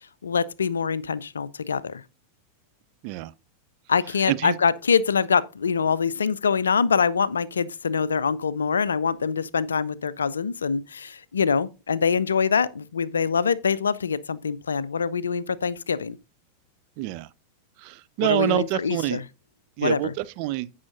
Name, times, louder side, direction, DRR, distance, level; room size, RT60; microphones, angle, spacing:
voice 1, 0.2-2.0 3.9-16.2 18.2-19.2 19.8-20.1, left 6 dB, 70° left, 0.4 m, -24 dB
voice 2, 17.0-17.3 17.8-19.2 19.8-20.7, right 16 dB, 45° right, 0.5 m, -27 dB
15.5 x 5.6 x 2.5 m
figure-of-eight pair, 90°, 0 cm